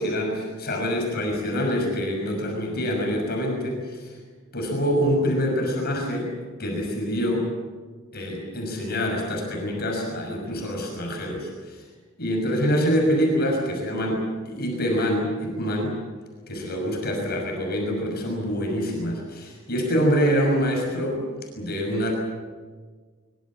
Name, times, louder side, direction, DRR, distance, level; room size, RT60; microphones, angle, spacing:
voice 1, 0.0-4.1 4.5-6.3 6.6-7.5 8.1-11.8 12.2-15.9 16.5-21.2 21.6-22.1, equal, 45° left, 0 dB, 6.2 m, -25 dB
24.0 x 23.5 x 7.5 m, 1.5 s
head